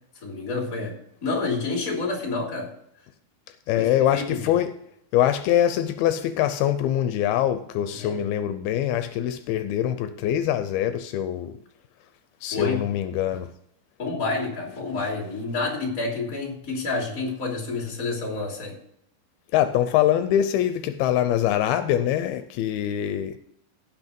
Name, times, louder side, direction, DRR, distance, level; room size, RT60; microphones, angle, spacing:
voice 1, 0.2-2.7 3.7-4.5 7.9-8.2 12.5-12.8 14.0-18.8, left 3 dB, 25° left, 3.0 m, -29 dB
voice 2, 3.7-4.7 5.1-11.6 12.4-13.5 19.5-23.4, left 11 dB, 80° left, 2.5 m, -23 dB
17.0 x 6.1 x 5.2 m
omnidirectional pair, 4.5 m